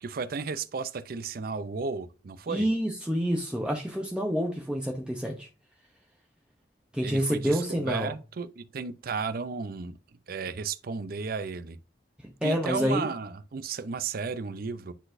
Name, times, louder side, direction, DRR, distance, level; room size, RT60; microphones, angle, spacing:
voice 1, 0.0-2.7 7.0-10.0 10.3-11.8 12.4-14.9, right 5 dB, 55° right, 0.5 m, -34 dB
voice 2, 2.5-5.5 6.9-8.1 12.4-13.1, equal, 5° right, 0.7 m, -28 dB
10.0 x 3.9 x 2.6 m
head